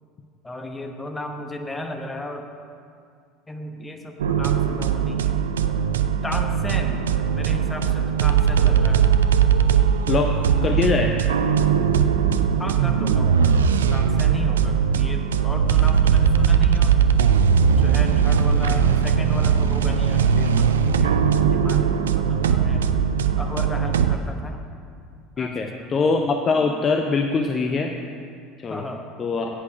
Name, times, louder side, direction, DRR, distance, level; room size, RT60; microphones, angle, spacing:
voice 1, 0.4-2.5 3.5-5.4 6.2-7.0 7.3-9.1 12.6-17.0 17.8-22.0 22.3-22.9 23.4-24.6 25.4-26.0 28.7-29.1, left 1 dB, 15° left, 4 dB, 1.1 m, -34 dB
sound 1, 4.2-24.2, right 7 dB, 70° right, 0.4 m, -19 dB
voice 2, 10.6-11.2 25.4-27.9 28.6-28.9 29.2-29.5, left 4 dB, 30° left, 4 dB, 0.7 m, -22 dB
9.6 x 8.3 x 6.3 m, 2.3 s
figure-of-eight pair, 65°, 0 cm